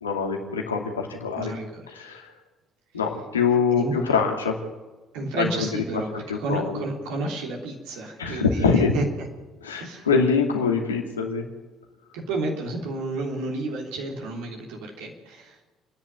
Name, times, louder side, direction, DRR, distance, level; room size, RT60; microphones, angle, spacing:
voice 1, 0.0-1.5 1.9-2.3 2.9-4.6 5.3-5.7 6.1-6.8 8.2-8.9 9.6-11.4, left 5 dB, 80° left, 2 dB, 2.6 m, -24 dB
voice 2, 1.4-1.8 3.7-3.9 5.1-9.0 9.8-10.1 12.1-15.6, right 2 dB, 65° right, -1 dB, 3.4 m, -31 dB
28.5 x 10.5 x 9.3 m, 1.2 s
figure-of-eight pair, 50°, 0 cm